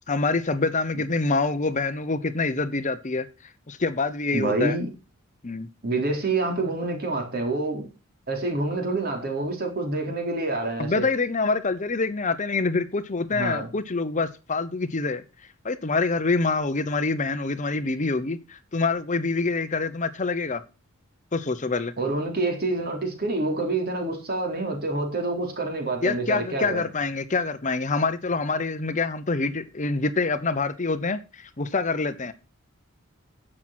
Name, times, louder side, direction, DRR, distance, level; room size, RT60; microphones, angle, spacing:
voice 1, 0.1-3.3 3.7-4.7 5.4-5.7 10.8-15.2 15.6-20.6 21.3-21.9 26.0-32.3, left 3 dB, 35° left, 0.8 m, -26 dB
voice 2, 4.3-4.9 5.8-7.9 8.3-11.1 13.3-13.7 22.0-26.8, right 2 dB, 45° right, 3.8 m, -27 dB
10.5 x 7.6 x 5.9 m
head